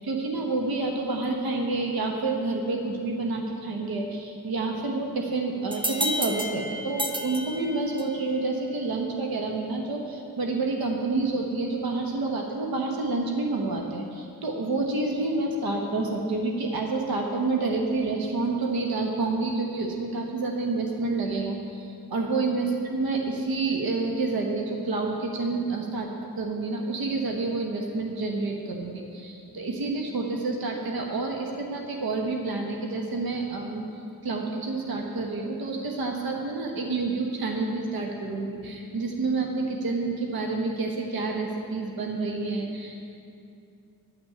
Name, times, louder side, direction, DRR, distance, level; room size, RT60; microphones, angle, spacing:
voice 1, 0.0-26.1 26.4-33.8 34.2-43.0, right 3 dB, 80° right, 1 dB, 1.3 m, -28 dB
sound 1, 5.7-8.3, equal, 15° right, 0.6 m, -31 dB
11.0 x 6.1 x 8.6 m, 2.6 s
wide cardioid pair, 170°, 36 cm